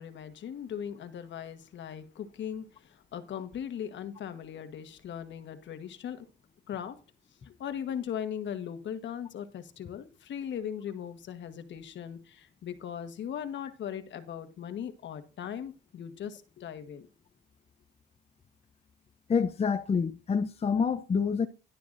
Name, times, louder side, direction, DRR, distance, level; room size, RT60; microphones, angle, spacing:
voice 1, 0.0-6.2 6.7-7.0 7.4-17.1, left 9 dB, 65° left, 1.3 m, -39 dB
voice 2, 19.3-21.5, left 6 dB, 30° left, 0.6 m, -27 dB
11.5 x 11.0 x 2.6 m
cardioid pair, 90°, 20 cm